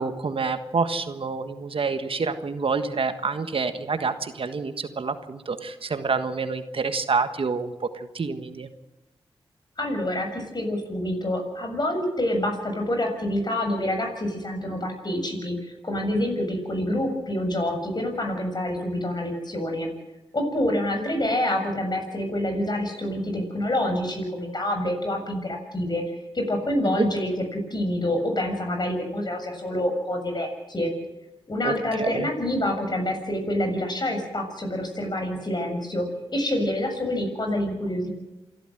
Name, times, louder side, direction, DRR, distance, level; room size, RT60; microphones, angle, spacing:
voice 1, 0.0-8.7 26.9-27.1 31.6-32.3, right 4 dB, 65° right, 9 dB, 1.5 m, -28 dB
voice 2, 9.8-15.6 15.8-19.9 20.3-26.0 26.3-30.9 31.5-38.1, left 1 dB, 45° left, 4 dB, 7.3 m, -27 dB
27.0 x 12.5 x 7.9 m, 1.0 s
cardioid pair, 40°, 10 cm